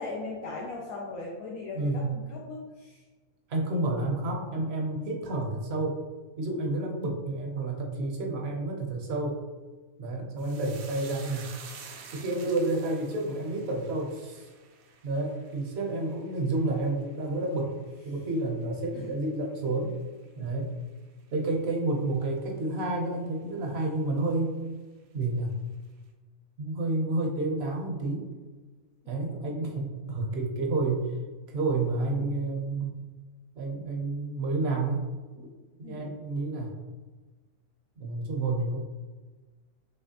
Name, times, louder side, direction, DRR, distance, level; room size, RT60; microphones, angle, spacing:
voice 1, 0.0-3.0 18.9-19.2 29.3-29.8 35.8-36.2, left 3 dB, 85° left, -3 dB, 1.2 m, -39 dB
voice 2, 1.8-2.1 3.5-6.0 6.4-9.4 10.0-11.5 12.1-14.5 15.0-17.7 18.0-19.9 20.4-20.7 21.3-24.5 25.1-25.5 26.6-28.3 29.1-31.1 31.5-32.9 33.6-35.0 35.4-35.5 35.8-36.7 38.0-38.8, right 2 dB, 55° right, 1 dB, 0.9 m, -30 dB
sound 1, 10.4-19.0 19.3-19.9 20.2-20.5, right 6 dB, 80° right, 1.0 m, -50 dB
5.6 x 3.1 x 2.8 m, 1.3 s
omnidirectional pair, 1.5 m